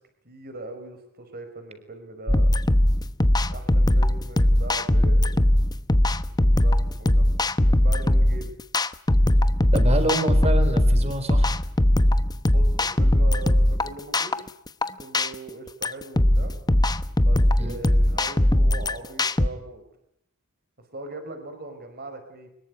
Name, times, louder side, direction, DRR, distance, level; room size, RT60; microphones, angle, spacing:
voice 1, 0.2-2.5 3.5-5.4 6.3-7.3 7.7-8.5 12.5-14.5 15.0-16.5 17.2-19.8 20.9-22.5, right 2 dB, 50° right, 7 dB, 4.9 m, -40 dB
sound 1, 2.3-19.5, left 1 dB, 20° left, 1.0 m, -20 dB
voice 2, 9.7-11.6 17.6-17.8, right 1 dB, 30° right, 10 dB, 4.1 m, -27 dB
24.5 x 21.5 x 9.6 m, 0.75 s
head